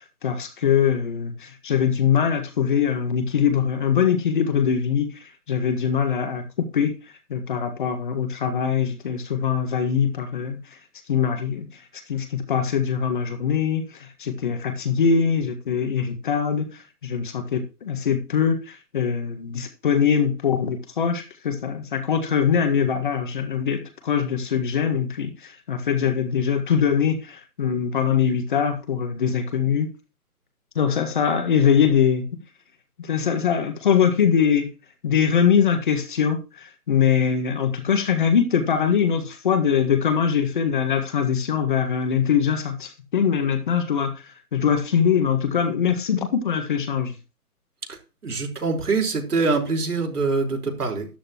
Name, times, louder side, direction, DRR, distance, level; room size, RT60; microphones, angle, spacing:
voice 1, 0.0-6.4 6.7-6.9 7.3-10.8 11.1-11.8 12.1-29.9 30.7-32.3 33.0-34.7 35.0-47.1, left 7 dB, 35° left, 1.7 m, -22 dB
voice 2, 48.2-51.1, right 4 dB, 75° right, 4.7 m, -24 dB
13.0 x 11.0 x 3.0 m
hypercardioid pair, 160°, 45 cm